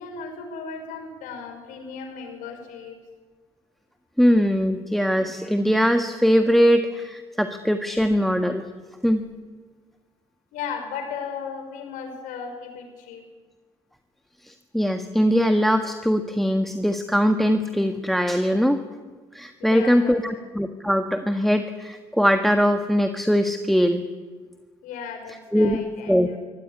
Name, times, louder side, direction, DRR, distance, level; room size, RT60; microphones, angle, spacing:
voice 1, 0.0-3.0 10.5-13.2 19.6-20.4 24.8-26.4, left 6 dB, 60° left, 6 dB, 5.1 m, -36 dB
voice 2, 4.2-8.6 9.0-9.2 14.4-18.8 19.3-24.0 25.5-25.8 26.1-26.3, equal, ahead, 7 dB, 1.6 m, -21 dB
24.5 x 17.5 x 8.7 m, 1.4 s
figure-of-eight pair, 45°, 15 cm